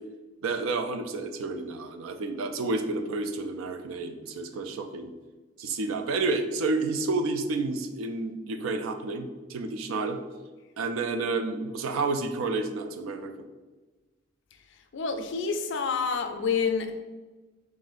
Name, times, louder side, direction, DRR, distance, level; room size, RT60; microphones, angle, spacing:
voice 1, 0.4-5.1 5.6-10.2 10.8-13.3, right 3 dB, 80° right, 7 dB, 0.4 m, -30 dB
voice 2, 14.9-17.0, left 5 dB, 60° left, 6 dB, 0.4 m, -28 dB
3.7 x 2.6 x 4.0 m, 1.3 s
head